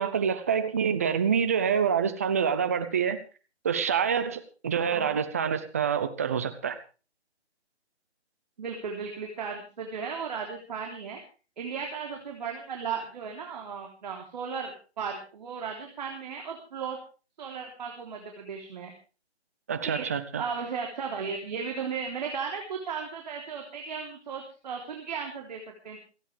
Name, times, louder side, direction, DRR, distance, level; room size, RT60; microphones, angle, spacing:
voice 1, 0.0-3.2 3.6-6.8 19.7-20.4, right 7 dB, 15° right, 0.7 m, -26 dB
voice 2, 4.9-5.2 8.6-11.2 11.6-17.0 17.4-18.9 19.8-20.1 20.4-26.0, right 6 dB, 40° right, 3.5 m, -35 dB
28.5 x 10.0 x 3.4 m
figure-of-eight pair, 155°, 34 cm